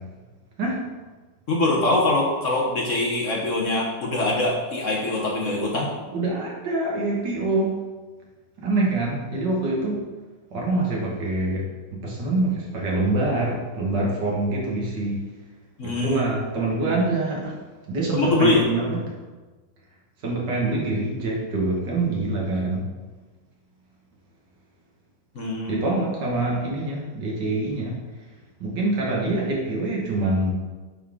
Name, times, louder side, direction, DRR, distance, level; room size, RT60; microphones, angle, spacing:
voice 1, 1.5-5.9 15.8-16.2 18.1-18.6 25.3-25.8, left 2 dB, 50° left, -2 dB, 1.2 m, -23 dB
voice 2, 6.1-7.7 8.6-10.0 10.5-11.6 12.0-15.2 15.8-17.5 17.9-19.0 20.2-22.8 25.7-27.9 28.6-30.5, right 2 dB, 70° right, -2 dB, 2.2 m, -25 dB
9.6 x 4.3 x 3.7 m, 1.3 s
omnidirectional pair, 2.0 m